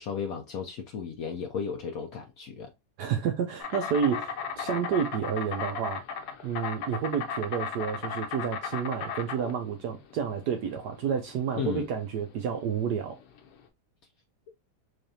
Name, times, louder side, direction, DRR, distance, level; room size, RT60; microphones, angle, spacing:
voice 1, 0.0-2.7 11.5-11.9, left 6 dB, 80° left, 0.8 m, -34 dB
voice 2, 3.0-6.0 6.4-13.2, right 7 dB, 75° right, 0.9 m, -30 dB
Insect, 3.6-13.6, left 6 dB, 65° left, 1.1 m, -36 dB
3.9 x 3.3 x 2.7 m
omnidirectional pair, 2.3 m